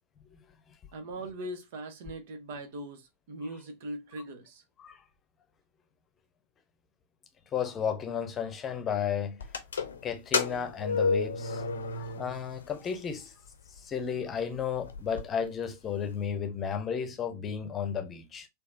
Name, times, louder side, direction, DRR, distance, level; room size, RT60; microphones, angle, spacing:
voice 1, 0.9-4.6, right 1 dB, 50° right, 0.9 m, -40 dB
voice 2, 7.5-9.5 10.0-13.3 13.7-18.5, left 7 dB, 25° left, 0.8 m, -33 dB
sound 1, 9.4-12.5 12.9-13.0 13.8-13.9 14.3-14.4 14.6-15.2, left 4 dB, 65° left, 0.7 m, -31 dB
4.2 x 2.7 x 2.6 m
figure-of-eight pair, 90°, 0 cm